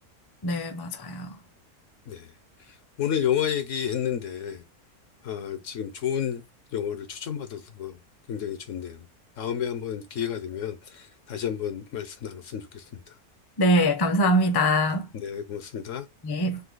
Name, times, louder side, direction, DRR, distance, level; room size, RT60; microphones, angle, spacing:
voice 1, 0.4-1.3 13.6-15.0 16.2-16.6, equal, 25° left, 0.5 m, -23 dB
voice 2, 3.0-4.6 5.2-6.4 6.7-8.0 8.3-9.0 9.4-12.8 15.1-16.1, left 9 dB, 65° left, 0.9 m, -31 dB
3.9 x 2.7 x 3.8 m
omnidirectional pair, 1.6 m